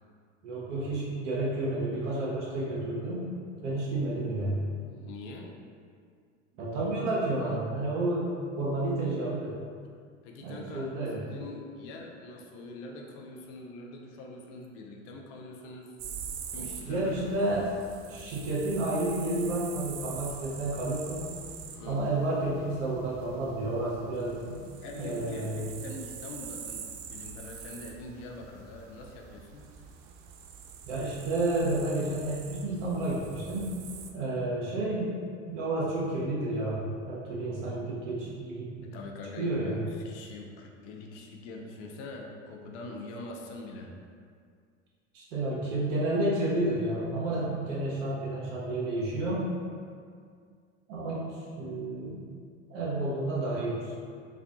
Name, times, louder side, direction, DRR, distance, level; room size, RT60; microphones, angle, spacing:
voice 1, 0.4-3.2 3.6-4.6 6.6-9.5 10.4-11.2 16.8-17.7 18.1-21.3 21.9-24.6 25.0-25.7 30.8-33.7 34.1-35.2 35.5-38.9 39.4-39.8 45.1-49.4 50.9-51.3 51.6-52.2 52.7-53.8, right 2 dB, 70° right, -6 dB, 1.3 m, -31 dB
voice 2, 4.9-5.5 10.2-15.9 16.5-17.1 21.7-22.0 24.8-29.6 38.8-43.9, left 2 dB, 65° left, 1 dB, 0.7 m, -43 dB
sound 1, 16.0-34.1, right 7 dB, 50° right, 0.5 m, -44 dB
4.8 x 2.6 x 2.4 m, 2.1 s
hypercardioid pair, 85°, 38 cm